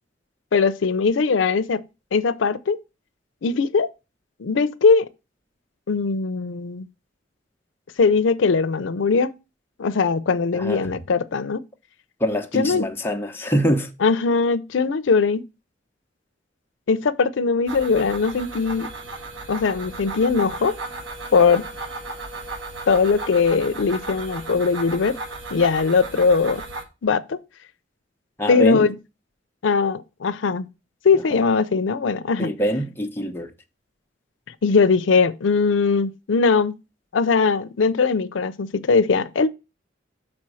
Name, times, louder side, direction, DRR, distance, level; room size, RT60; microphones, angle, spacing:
voice 1, 0.5-1.8 2.1-2.8 3.4-3.9 4.4-5.1 5.9-6.9 8.0-9.3 9.8-11.6 12.5-12.9 14.0-15.4 16.9-18.9 19.5-20.7 21.3-21.6 22.9-25.2 25.5-26.6 27.0-27.4 28.5-29.0 29.6-30.7 31.0-32.5 34.6-36.7 37.1-39.5, left 4 dB, 85° left, 0.5 m, -20 dB
voice 2, 10.5-10.9 12.2-13.9 28.4-28.9 31.3-31.4 32.4-33.5, equal, 10° left, 0.8 m, -24 dB
sound 1, 17.7-26.8, right 2 dB, 80° right, 1.5 m, -35 dB
6.1 x 4.4 x 6.2 m
head